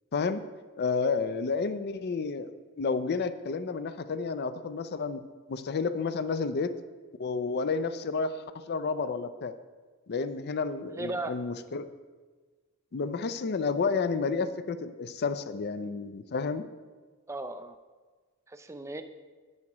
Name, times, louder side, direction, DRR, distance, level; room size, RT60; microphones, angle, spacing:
voice 1, 0.1-0.4 0.8-2.5 2.8-5.2 5.5-6.7 7.2-9.5 10.1-11.9 12.9-16.7, left 4 dB, 45° left, 12 dB, 0.4 m, -31 dB
voice 2, 10.9-11.3 17.3-17.8 18.5-19.0, right 2 dB, 15° right, 9 dB, 0.4 m, -36 dB
10.5 x 8.3 x 3.0 m, 1.4 s
head